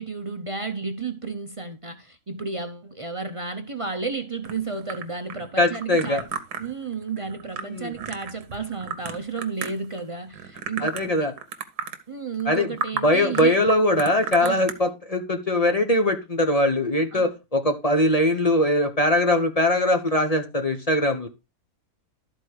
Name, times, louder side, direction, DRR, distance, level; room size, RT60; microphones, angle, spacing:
voice 1, 0.0-6.2 6.6-11.3 12.1-13.5 14.4-14.7 17.1-17.3, right 4 dB, 35° right, 0.5 m, -32 dB
sound 1, 4.4-10.0 10.3-11.1 11.4-12.0 12.4-12.5 12.8-13.0 13.3-14.7, right 7 dB, 85° right, 1.5 m, -33 dB
voice 2, 5.6-6.2 7.6-7.9 10.8-11.3 12.5-12.7 13.0-21.3, left 1 dB, 30° left, 0.9 m, -21 dB
12.5 x 4.3 x 4.6 m
omnidirectional pair, 1.7 m